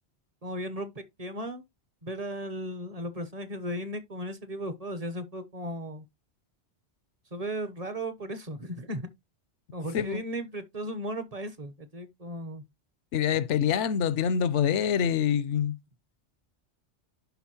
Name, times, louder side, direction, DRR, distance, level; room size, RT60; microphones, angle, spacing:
voice 1, 0.4-1.6 2.0-6.0 7.3-9.1 9.7-12.6, right 1 dB, 35° right, 0.9 m, -36 dB
voice 2, 13.1-15.7, left 8 dB, 85° left, 1.0 m, -25 dB
11.0 x 4.1 x 2.8 m
omnidirectional pair, 1.2 m